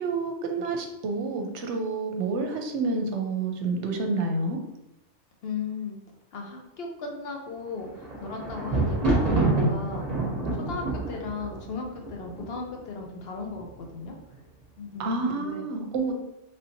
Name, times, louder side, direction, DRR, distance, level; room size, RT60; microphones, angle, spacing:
voice 1, 0.0-4.6 15.0-16.1, right 3 dB, 70° right, 3 dB, 0.9 m, -29 dB
voice 2, 5.4-6.0 6.3-10.1 10.6-14.1 14.8-15.7, left 4 dB, 60° left, 1 dB, 0.8 m, -36 dB
Thunder, 7.7-12.8 13.5-14.1 14.3-14.4, right 2 dB, 35° right, 0.9 m, -27 dB
3.3 x 2.8 x 2.7 m, 0.89 s
omnidirectional pair, 1.3 m